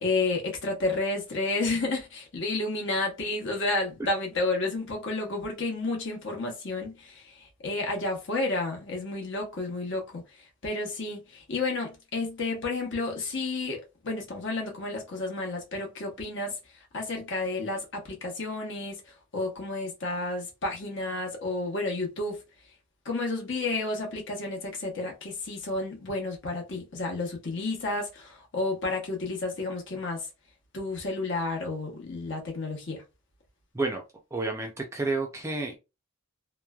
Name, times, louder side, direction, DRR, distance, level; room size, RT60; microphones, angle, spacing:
voice 1, 0.0-16.5 16.9-22.4 23.0-30.3 30.7-33.0, left 2 dB, 55° left, 0.9 m, -31 dB
voice 2, 34.3-35.8, right 3 dB, 15° right, 0.4 m, -30 dB
3.0 x 2.2 x 2.2 m
head